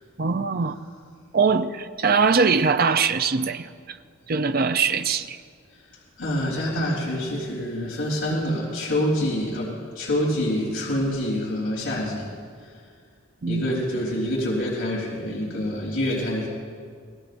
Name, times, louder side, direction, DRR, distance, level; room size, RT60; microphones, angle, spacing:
voice 1, 0.2-0.7 1.3-4.0 4.3-5.4 13.4-13.7, right 5 dB, 45° right, 9 dB, 0.6 m, -22 dB
voice 2, 6.2-12.3 12.6-12.7 13.5-16.5, left 1 dB, 65° left, -6 dB, 3.7 m, -26 dB
27.0 x 19.0 x 2.6 m, 2.1 s
head